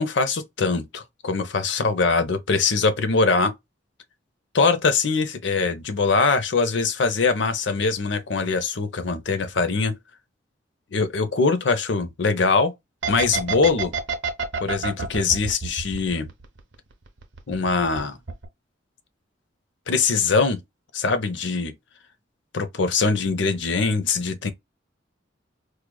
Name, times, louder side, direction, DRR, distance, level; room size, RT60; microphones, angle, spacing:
voice 1, 0.0-3.5 4.5-9.9 10.9-12.7 13.1-13.9 14.6-16.3 17.5-18.2 19.9-20.6 20.9-21.7 22.5-24.5, left 4 dB, 70° left, 0.6 m, -22 dB
sound 1, 13.0-16.7 17.1-18.0 18.3-18.4, right 5 dB, 70° right, 0.8 m, -27 dB
4.7 x 2.3 x 2.2 m
head